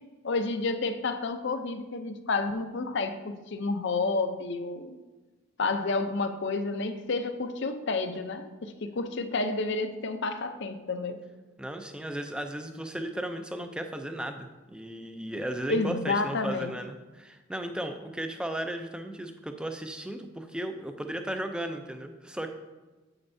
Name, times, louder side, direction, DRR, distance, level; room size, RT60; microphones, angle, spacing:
voice 1, 0.2-5.0 5.6-11.2 15.7-16.7, left 3 dB, 55° left, 8 dB, 0.6 m, -30 dB
voice 2, 11.6-22.5, right 1 dB, 5° right, 6 dB, 0.4 m, -35 dB
8.8 x 7.9 x 2.7 m, 1.2 s
head